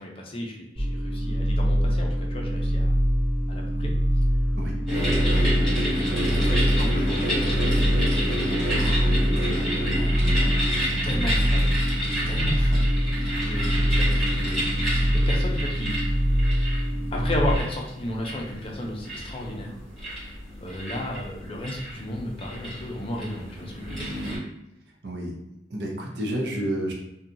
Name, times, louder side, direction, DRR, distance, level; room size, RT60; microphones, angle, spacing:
voice 1, 0.0-3.0 3.5-3.9 5.2-5.9 6.2-8.4 8.7-9.1 9.9-10.5 10.7-11.8 12.1-12.9 13.4-14.6 15.1-16.2 17.1-19.8 20.6-24.1, left 1 dB, 30° left, -1 dB, 0.5 m, -34 dB
sound 1, 0.8-17.6, equal, 25° right, 0.7 m, -24 dB
sound 2, 4.9-24.4, equal, 5° left, 1.3 m, -29 dB
voice 2, 25.0-25.3 25.7-27.0, right 1 dB, 70° right, 0 dB, 0.7 m, -29 dB
2.7 x 2.3 x 2.6 m, 0.89 s
head